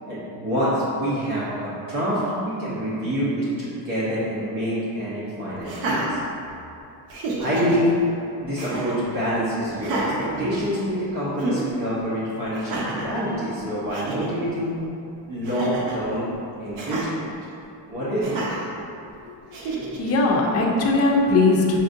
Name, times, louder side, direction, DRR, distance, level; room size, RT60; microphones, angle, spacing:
voice 1, 0.1-6.2 7.4-7.9 8.4-14.8 15.3-16.3 16.6-17.3 17.9-18.4, equal, 50° right, -10 dB, 1.1 m, -26 dB
Laughter, 5.6-6.7 7.1-7.8 8.6-9.0 9.8-11.0 11.4-11.7 12.5-13.1 13.6-13.7 13.9-14.3 15.4-16.0 16.8-17.1 18.2-18.7 19.5-20.1, right 2 dB, 80° right, 0.8 m, -29 dB
voice 2, 19.3-21.8, left 2 dB, 35° left, -2 dB, 0.5 m, -20 dB
5.8 x 2.6 x 2.6 m, 2.7 s
cardioid pair, 155°, 45 cm